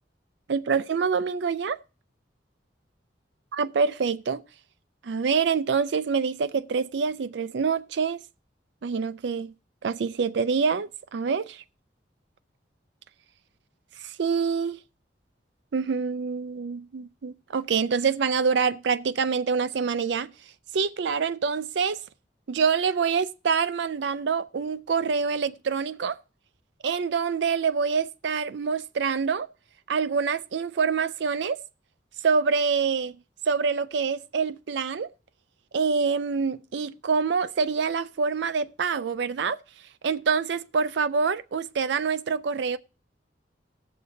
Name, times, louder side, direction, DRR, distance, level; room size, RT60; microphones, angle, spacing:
voice 1, 0.5-1.8 3.5-4.4 5.0-8.2 8.8-9.5 9.8-11.6 14.0-14.8 15.7-20.3 20.7-22.0 22.5-26.2 26.8-29.5 29.9-31.6 32.2-33.2 33.5-35.1 35.7-39.6 40.0-42.8, right 5 dB, 75° right, 0.4 m, -26 dB
19.5 x 6.7 x 2.7 m
head